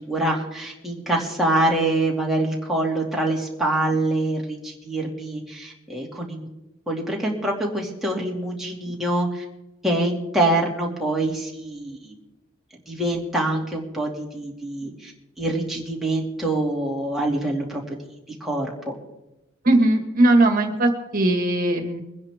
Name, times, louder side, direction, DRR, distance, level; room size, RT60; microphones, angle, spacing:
voice 1, 0.0-6.4 6.9-9.4 9.8-12.1 12.9-15.1 15.4-17.8 18.4-18.9, right 1 dB, ahead, -3 dB, 2.5 m, -25 dB
voice 2, 19.6-22.0, right 2 dB, 45° right, 4 dB, 1.9 m, -19 dB
23.0 x 10.5 x 3.7 m, 0.95 s
head